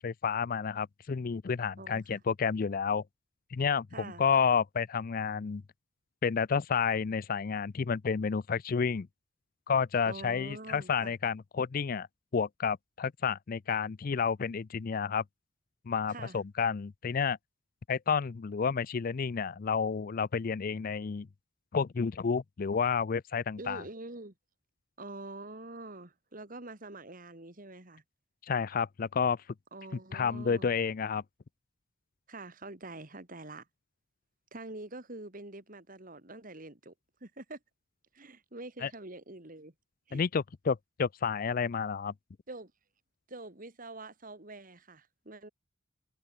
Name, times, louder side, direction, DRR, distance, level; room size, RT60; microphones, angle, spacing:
voice 1, 0.0-3.0 3.5-5.6 6.2-9.1 9.7-12.1 12.3-15.2 15.9-17.4 17.9-21.3 21.7-23.8 28.5-29.4 30.1-31.2 38.8-38.9 40.1-42.1, left 6 dB, 45° left, 0.4 m, -30 dB
voice 2, 1.8-2.2 3.9-4.2 10.0-11.1 16.1-16.4 23.6-24.3 25.0-28.0 29.7-30.7 32.3-33.7 34.5-36.9 37.2-37.6 38.1-39.7 40.1-40.2 42.5-42.7 43.3-45.5, right 2 dB, 45° right, 2.7 m, -45 dB
head